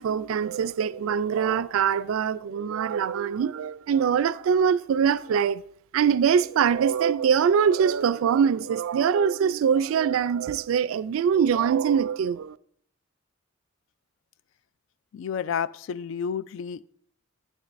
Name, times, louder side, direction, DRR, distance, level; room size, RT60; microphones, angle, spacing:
voice 1, 0.0-5.6 5.9-12.6, right 7 dB, 90° right, 0.3 m, -23 dB
voice 2, 15.1-16.8, left 7 dB, 70° left, 0.3 m, -30 dB
9.5 x 9.1 x 2.5 m
head